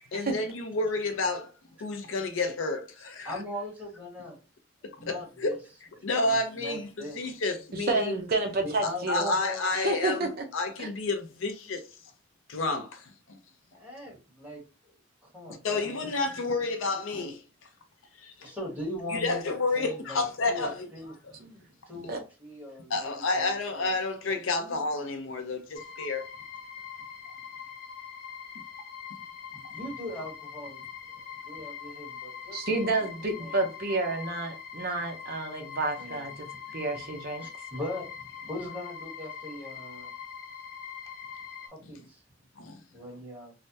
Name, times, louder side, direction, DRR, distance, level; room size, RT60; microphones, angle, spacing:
voice 1, 0.1-1.5 1.8-3.3 4.8-5.6 6.0-8.2 8.8-11.8 12.5-13.4 15.6-17.4 18.2-18.5 19.1-20.9 22.9-26.2 42.6-42.8, left 3 dB, 70° left, 0.5 m, -30 dB
voice 2, 3.2-4.4 4.9-5.6 6.0-7.2 8.6-9.7 13.7-14.6 15.2-16.2 18.4-19.4 19.8-21.1 21.9-24.0 24.3-24.8 29.7-30.8 31.4-33.1 33.4-33.6 36.0-36.9 37.4-40.1 41.6-42.2 42.6-43.5, left 1 dB, 10° right, 1.5 m, -40 dB
voice 3, 7.9-9.3 9.7-10.3 21.4-21.5 22.1-22.2 32.5-36.5 36.7-37.5, right 2 dB, 45° right, 0.6 m, -29 dB
sound 1, 25.7-41.7, left 7 dB, 35° left, 0.7 m, -43 dB
3.2 x 2.1 x 2.7 m
head